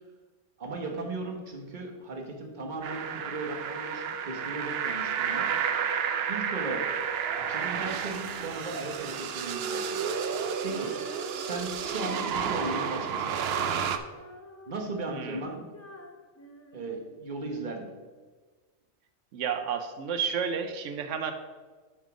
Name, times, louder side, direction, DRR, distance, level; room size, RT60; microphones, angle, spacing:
voice 1, 0.6-5.9 6.3-6.9 7.4-10.0 10.6-11.0 11.3-13.4 14.7-15.7 16.7-17.9, right 3 dB, 40° right, 2 dB, 1.3 m, -37 dB
sound 1, 2.8-14.0, right 7 dB, 65° right, 0.7 m, -31 dB
Female singing, 10.6-17.6, left 2 dB, 15° left, 0.5 m, -47 dB
voice 2, 15.1-15.4 19.3-21.3, right 7 dB, 90° right, 8 dB, 1.0 m, -31 dB
7.5 x 5.4 x 5.0 m, 1.4 s
omnidirectional pair, 1.2 m